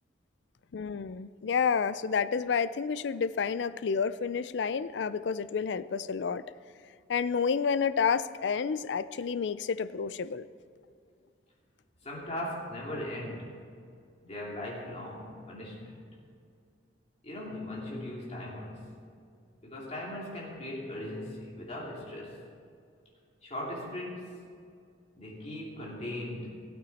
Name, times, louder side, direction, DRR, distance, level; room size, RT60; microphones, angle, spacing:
voice 1, 0.7-6.4 7.1-10.5, left 6 dB, 65° left, 15 dB, 0.4 m, -30 dB
voice 2, 12.0-13.6 14.2-16.0 17.2-19.0 19.6-22.4 23.4-24.4 25.2-26.6, left 1 dB, 35° left, -4 dB, 2.6 m, -39 dB
16.5 x 8.7 x 4.2 m, 2.3 s
head